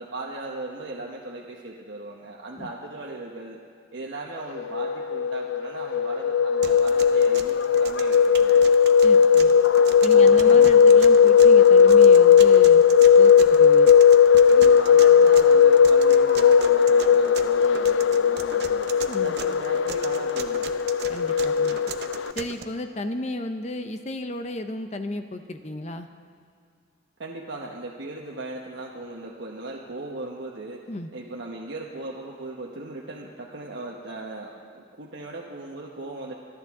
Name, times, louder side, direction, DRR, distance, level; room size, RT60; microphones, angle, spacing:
voice 1, 0.0-3.6 3.9-8.6 10.1-10.8 14.5-18.9 19.2-20.7 27.2-30.8 31.1-36.4, right 2 dB, 80° right, -2 dB, 1.1 m, -38 dB
sound 1, 4.6-22.3, left 7 dB, 85° left, 0.4 m, -17 dB
sound 2, 6.6-22.6, right 6 dB, 60° right, 0.8 m, -39 dB
voice 2, 9.0-9.6 10.0-12.8 13.2-13.9 19.1-19.3 21.1-21.9 22.4-26.1 30.9-31.1, left 1 dB, 35° left, 8 dB, 0.6 m, -34 dB
26.0 x 11.0 x 3.7 m, 2.2 s
head